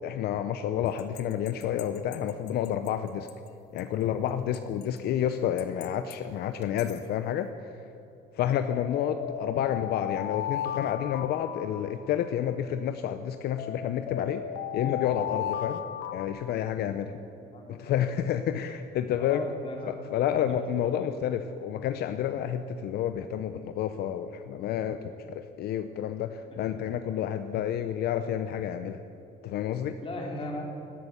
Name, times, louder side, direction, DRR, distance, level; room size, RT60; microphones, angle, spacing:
voice 1, 0.0-3.3 3.7-7.8 8.3-14.4 14.7-15.8 16.1-17.1 17.7-19.5 19.9-29.0 29.4-30.0, left 10 dB, 70° left, 9 dB, 0.7 m, -30 dB
sound 1, 1.0-2.9 3.3-3.4 3.8-3.9 4.5-5.0 5.6-6.1 6.6-7.0 8.7-12.5 13.6-16.3, left 10 dB, 90° left, 1.0 m, -36 dB
voice 2, 17.5-18.0 19.1-19.9 20.5-20.6 20.9-21.1 30.0-30.6, left 2 dB, 30° left, -1 dB, 4.1 m, -38 dB
13.0 x 13.0 x 8.1 m, 3.0 s
cardioid pair, 110°, 17 cm